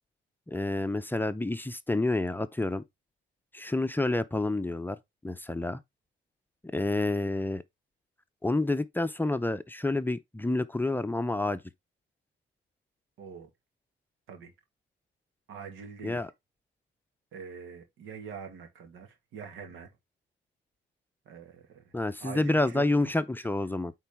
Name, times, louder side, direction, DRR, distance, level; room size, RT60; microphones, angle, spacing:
voice 1, 0.5-2.8 3.5-5.0 5.2-5.8 6.7-7.6 8.4-11.6 16.0-16.3 21.9-23.9, left 2 dB, 10° left, 0.6 m, -29 dB
voice 2, 13.2-13.5 14.3-14.5 15.5-16.3 17.3-19.9 21.3-21.9 22.2-23.1, right 6 dB, 90° right, 2.0 m, -44 dB
8.8 x 4.0 x 3.6 m
cardioid pair, 100°, 20 cm